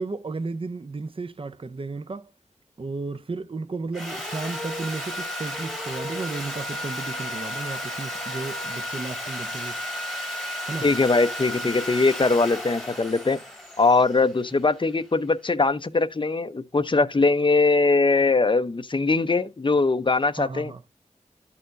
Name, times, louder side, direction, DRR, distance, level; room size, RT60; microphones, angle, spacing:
voice 1, 0.0-2.3 2.8-9.8 10.7-10.9 11.6-11.7 20.4-20.8, right 3 dB, 45° right, 0.6 m, -33 dB
Sawing, 3.9-15.0, left 1 dB, ahead, 3.1 m, -33 dB
voice 2, 10.8-13.4 13.8-20.7, left 3 dB, 40° left, 0.7 m, -21 dB
12.0 x 4.3 x 2.5 m
wide cardioid pair, 60°, 13 cm